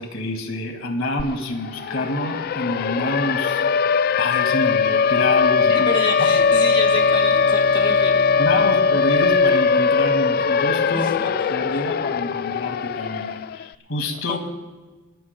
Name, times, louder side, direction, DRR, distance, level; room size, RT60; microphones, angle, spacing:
voice 1, 0.0-3.6 4.2-5.9 8.4-14.4, left 1 dB, 70° left, 4 dB, 2.0 m, -27 dB
Siren, 1.2-1.3 1.6-13.6, left 5 dB, 45° left, 0.3 m, -20 dB
voice 2, 5.7-8.3 10.8-11.8 14.3-14.4, left 2 dB, 25° left, 2 dB, 1.6 m, -29 dB
Bowed string instrument, 6.0-10.4, right 3 dB, 70° right, 1.1 m, -38 dB
29.5 x 13.5 x 2.2 m, 1.3 s
head